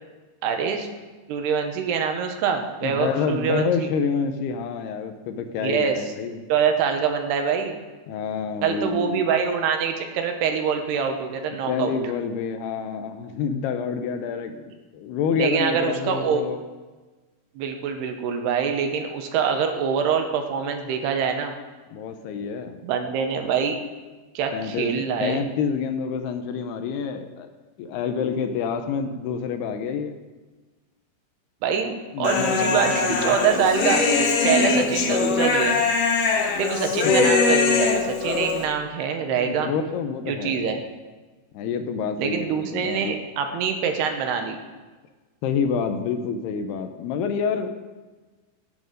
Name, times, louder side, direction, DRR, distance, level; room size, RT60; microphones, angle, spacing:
voice 1, 0.4-0.9 1.3-3.9 5.6-6.0 6.5-7.8 8.6-11.9 15.4-16.4 17.6-21.5 22.8-23.8 24.3-25.4 31.6-34.0 34.4-35.8 36.6-39.7 40.3-40.8 42.2-44.6, right 7 dB, 75° right, 5 dB, 3.0 m, -25 dB
voice 2, 2.8-6.4 8.1-9.3 11.7-16.6 21.9-22.8 24.5-27.5 27.8-30.1 32.1-33.9 34.8-35.3 37.0-37.3 39.2-40.7 41.5-43.2 45.4-47.8, left 6 dB, 75° left, 7 dB, 2.6 m, -28 dB
Human voice, 32.2-38.7, left 4 dB, 60° left, 2.6 m, -22 dB
17.5 x 9.3 x 5.2 m, 1.3 s
omnidirectional pair, 5.0 m